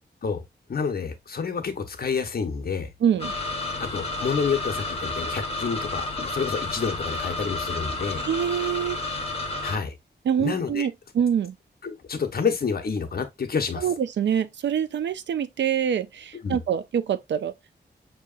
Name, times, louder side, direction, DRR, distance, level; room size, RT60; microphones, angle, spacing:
voice 1, 0.7-2.9 3.8-8.2 9.6-9.9 10.4-10.9 11.8-13.8 16.4-16.6, left 5 dB, 55° left, 0.9 m, -28 dB
voice 2, 3.0-3.3 8.2-9.0 10.3-11.6 13.8-17.8, right 8 dB, 75° right, 0.5 m, -25 dB
sound 1, 3.2-9.8, left 2 dB, 30° left, 1.0 m, -31 dB
6.0 x 2.8 x 2.4 m
wide cardioid pair, 125°, 19 cm